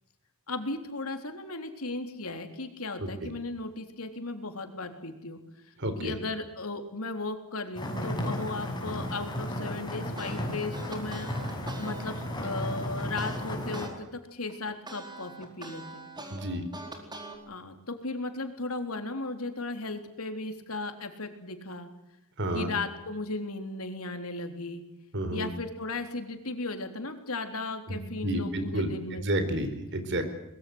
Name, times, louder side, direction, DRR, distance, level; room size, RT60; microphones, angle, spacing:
voice 1, 0.5-5.4 5.7-5.8 6.0-16.1 17.5-21.9 22.5-24.8 25.3-29.4, left 2 dB, 80° left, 6 dB, 3.6 m, -36 dB
voice 2, 5.8-6.1 16.3-16.6 22.4-22.7 25.1-25.5 27.9-28.9 29.2-30.2, right 1 dB, 60° right, 9 dB, 4.3 m, -30 dB
sound 1, 7.7-13.9, left 1 dB, 20° left, 6.7 m, -34 dB
sound 2, 10.2-13.9 14.3-17.4, right 2 dB, 20° right, 4.4 m, -43 dB
23.5 x 21.5 x 8.0 m, 0.88 s
head